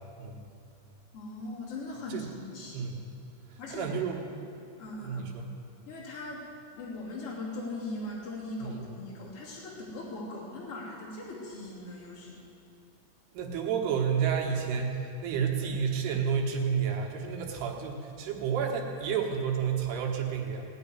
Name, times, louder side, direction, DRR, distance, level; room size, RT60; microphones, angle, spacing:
voice 1, 1.1-2.8 3.6-3.9 4.8-5.3 5.9-6.5 6.7-12.4, left 2 dB, 35° left, -6 dB, 3.4 m, -40 dB
voice 2, 3.7-4.2 5.0-5.5 8.6-8.7 13.4-20.7, right 7 dB, 75° right, 0 dB, 3.3 m, -30 dB
17.5 x 6.3 x 9.8 m, 2.6 s
omnidirectional pair, 4.9 m